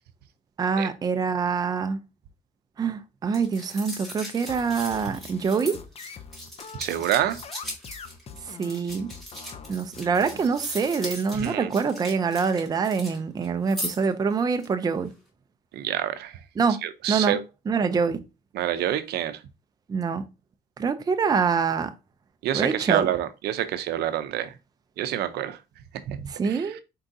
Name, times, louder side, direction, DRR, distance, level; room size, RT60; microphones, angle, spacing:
voice 1, 0.6-2.0 2.8-5.8 8.4-9.1 9.7-15.1 16.6-16.8 17.1-17.4 17.7-18.2 19.9-20.3 20.8-21.9 22.5-23.1 26.3-26.8, right 5 dB, 25° right, 0.4 m, -25 dB
sound 1, 3.3-13.2 13.4-14.1 14.5-14.6, equal, ahead, 2.1 m, -38 dB
sound 2, 4.5-11.1, left 6 dB, 35° left, 0.5 m, -44 dB
voice 2, 6.8-7.4 11.3-11.7 15.7-16.4 16.8-17.4 18.5-19.4 22.4-24.5 25.0-25.6 26.1-26.2 26.4-26.6, right 11 dB, 75° right, 0.6 m, -27 dB
4.6 x 3.7 x 2.6 m
cardioid pair, 110°, 17 cm